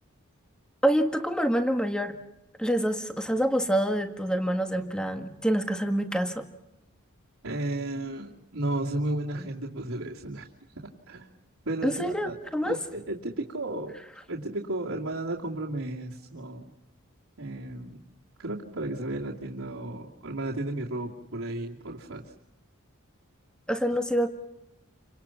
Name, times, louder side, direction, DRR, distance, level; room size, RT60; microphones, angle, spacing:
voice 1, 0.8-2.2 2.6-6.4 11.8-12.8 23.7-24.3, equal, 5° left, 6 dB, 1.7 m, -26 dB
voice 2, 7.4-10.5 11.1-11.3 11.7-12.4 12.6-14.0 14.3-16.7 17.4-18.0 18.4-22.3, right 2 dB, 80° right, -4 dB, 2.6 m, -33 dB
29.5 x 26.0 x 5.9 m, 0.91 s
head